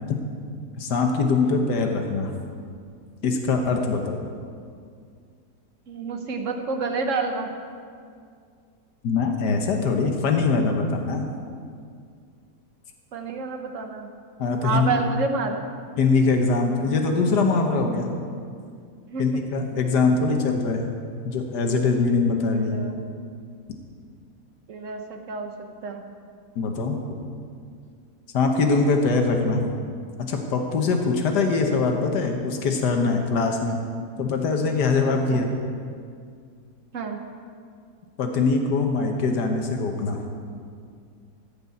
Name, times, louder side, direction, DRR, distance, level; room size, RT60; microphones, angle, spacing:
voice 1, 0.8-2.3 3.2-4.2 9.0-11.3 14.4-15.0 16.0-18.2 19.2-20.9 21.2-23.0 26.5-27.0 28.3-29.6 30.2-33.8 34.2-35.5 38.2-40.2, left 4 dB, 90° left, 3 dB, 1.7 m, -22 dB
voice 2, 5.9-7.5 13.1-14.1 14.6-15.6 19.1-19.2 22.5-23.0 24.7-25.5 25.8-26.0 35.3-35.4 36.9-37.2, right 4 dB, 55° right, 5 dB, 1.3 m, -29 dB
15.0 x 5.4 x 8.4 m, 2.2 s
omnidirectional pair, 1.7 m